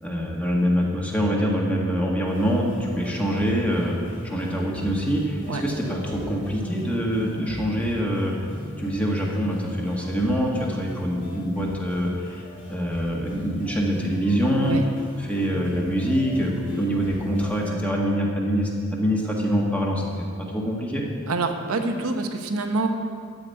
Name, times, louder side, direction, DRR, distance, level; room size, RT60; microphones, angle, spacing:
voice 1, 0.0-8.5 8.8-12.4 12.7-14.8 15.2-21.0, equal, 5° left, -2 dB, 1.6 m, -25 dB
sound 1, 2.3-17.7, equal, 35° left, 2.8 m, -41 dB
voice 2, 21.3-22.9, right 3 dB, 80° right, 4 dB, 1.0 m, -26 dB
14.0 x 5.2 x 9.0 m, 2.1 s
head